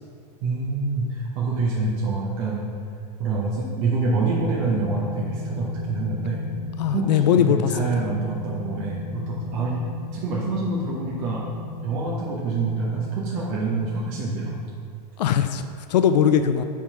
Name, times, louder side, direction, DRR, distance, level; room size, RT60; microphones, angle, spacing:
voice 1, 0.4-2.7 3.2-6.4 6.9-9.9 10.1-11.5 11.8-14.5, right 3 dB, 30° right, -4 dB, 0.7 m, -26 dB
sound 1, 4.3-14.6, left 4 dB, 55° left, 0.8 m, -36 dB
voice 2, 6.8-7.8 15.2-15.6 15.9-16.6, left 9 dB, 85° left, 9 dB, 0.4 m, -20 dB
7.3 x 3.6 x 5.6 m, 2.4 s
supercardioid pair, 170°, 21 cm